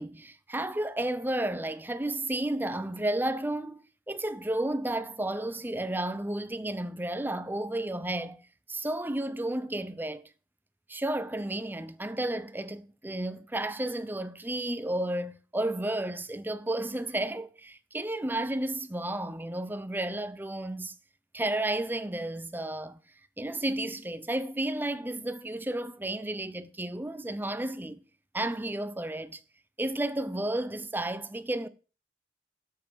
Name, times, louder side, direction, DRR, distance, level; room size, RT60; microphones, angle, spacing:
voice 1, 0.0-8.4 8.7-10.3 10.9-20.9 21.3-23.0 23.4-28.0 28.3-29.4 29.8-31.7, right 1 dB, 10° right, 0.6 m, -32 dB
9.2 x 7.6 x 5.6 m
head